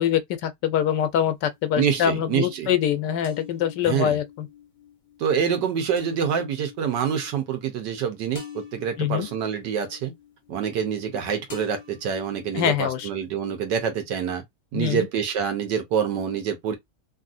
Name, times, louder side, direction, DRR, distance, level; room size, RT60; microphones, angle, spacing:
voice 1, 0.0-4.5 9.0-9.3 12.5-13.1 14.7-15.1, left 10 dB, 85° left, 1.2 m, -24 dB
sound 1, 0.7-1.6 3.2-11.2 11.5-13.6, left 8 dB, 30° left, 1.1 m, -45 dB
voice 2, 1.7-2.7 3.8-4.2 5.2-10.1 10.5-14.4 14.7-16.7, right 7 dB, 85° right, 1.5 m, -26 dB
3.1 x 2.6 x 2.5 m
omnidirectional pair, 1.8 m